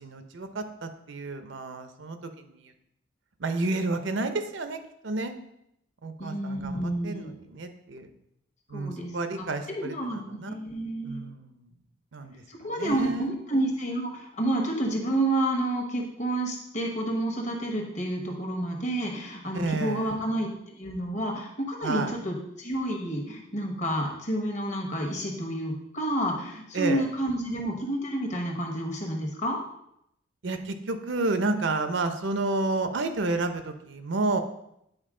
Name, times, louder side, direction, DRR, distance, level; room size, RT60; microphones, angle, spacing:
voice 1, 0.0-2.6 3.4-5.3 6.0-8.1 8.7-10.5 11.0-11.7 12.1-12.3 12.8-13.4 19.5-20.2 21.8-22.1 26.7-27.1 30.4-34.4, right 2 dB, 70° right, 8 dB, 0.7 m, -30 dB
voice 2, 6.2-7.3 8.7-9.5 9.7-11.2 12.5-29.6, right 1 dB, 40° left, 1 dB, 1.3 m, -30 dB
8.9 x 4.5 x 3.7 m, 0.77 s
head